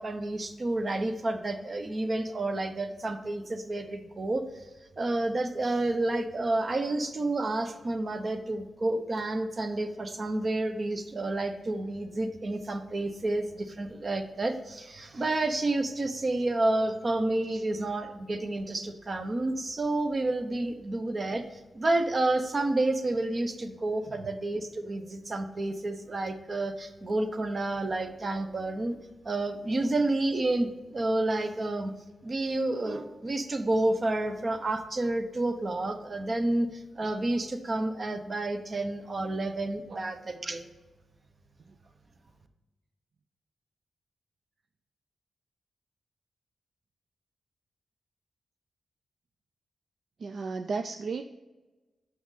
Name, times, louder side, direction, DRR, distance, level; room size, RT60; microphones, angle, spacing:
voice 1, 0.0-4.7 5.0-29.0 29.2-31.9 32.2-40.7, right 2 dB, 40° right, 7 dB, 0.8 m, -30 dB
voice 2, 50.2-51.2, right 4 dB, 60° right, 7 dB, 0.3 m, -34 dB
6.3 x 5.9 x 4.1 m, 1.2 s
cardioid pair, 85°, 0 cm